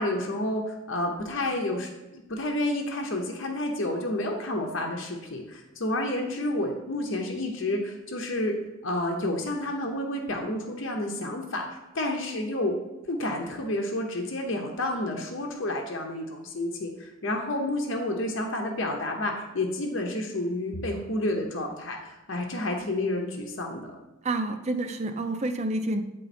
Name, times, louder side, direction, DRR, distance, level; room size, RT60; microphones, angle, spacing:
voice 1, 0.0-8.5 8.8-11.6 11.9-12.7 13.1-23.9, left 1 dB, 65° left, 1 dB, 0.8 m, -30 dB
voice 2, 24.2-26.0, right 2 dB, 30° right, 7 dB, 0.5 m, -28 dB
9.0 x 3.8 x 4.2 m, 1.0 s
head